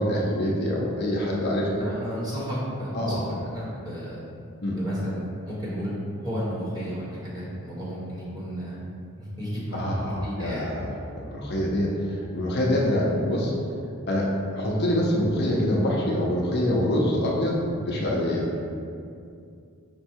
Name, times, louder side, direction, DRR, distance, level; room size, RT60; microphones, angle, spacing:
voice 1, 0.0-1.8 2.9-3.3 4.6-4.8 9.7-13.5 14.1-18.5, left 1 dB, 50° left, -3 dB, 0.6 m, -25 dB
voice 2, 1.8-3.2 3.5-4.2 4.8-5.9 6.2-8.8 9.2-10.6, equal, 20° right, -8 dB, 1.1 m, -33 dB
5.2 x 2.2 x 4.4 m, 2.4 s
head